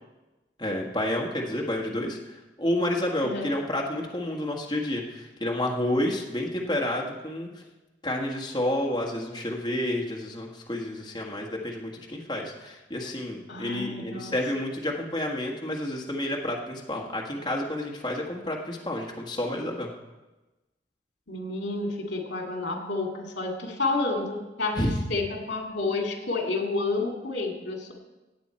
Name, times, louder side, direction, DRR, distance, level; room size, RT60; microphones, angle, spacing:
voice 1, 0.6-7.5 8.0-19.9 24.7-25.0, left 1 dB, 25° left, -1 dB, 1.5 m, -30 dB
voice 2, 13.5-14.4 21.3-27.9, left 3 dB, 85° left, 2 dB, 2.4 m, -30 dB
17.0 x 8.2 x 4.3 m, 1.1 s
head